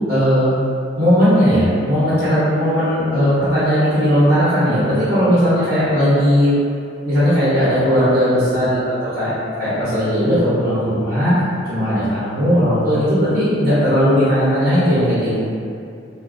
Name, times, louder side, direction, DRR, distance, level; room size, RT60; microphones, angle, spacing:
voice 1, 0.1-0.5 1.0-6.5 7.0-9.3 9.6-11.3 11.6-15.4, equal, 55° right, -13 dB, 0.7 m, -17 dB
2.4 x 2.1 x 2.3 m, 2.5 s
head